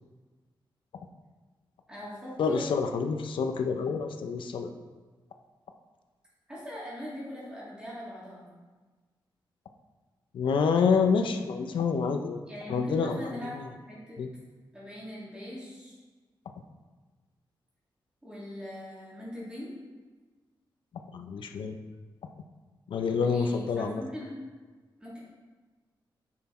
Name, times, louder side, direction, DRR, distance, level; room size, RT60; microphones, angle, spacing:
voice 1, 1.9-2.7 6.5-8.5 12.4-13.6 13.9-14.2 14.7-15.9 18.2-19.7 23.1-24.3 25.0-25.2, equal, 10° right, -7 dB, 3.1 m, -41 dB
voice 2, 2.4-4.7 10.3-12.4 12.7-13.7 14.2-14.3 21.1-21.8 22.9-24.0, left 5 dB, 85° left, 5 dB, 0.8 m, -27 dB
10.0 x 5.9 x 4.4 m, 1.3 s
wide cardioid pair, 150°, 8 cm